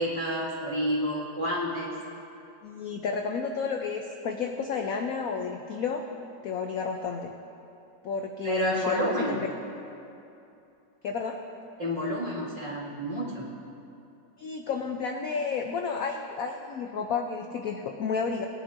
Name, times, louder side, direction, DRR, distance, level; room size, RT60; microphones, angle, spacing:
voice 1, 0.0-1.9 8.4-9.4 11.8-13.5, equal, 25° right, -6 dB, 2.2 m, -29 dB
voice 2, 2.6-6.0 6.4-7.3 8.0-9.4 9.8-9.9 11.0-11.4 14.4-18.5, left 5 dB, 70° left, 3 dB, 0.8 m, -31 dB
20.5 x 11.0 x 2.6 m, 2.8 s
omnidirectional pair, 2.0 m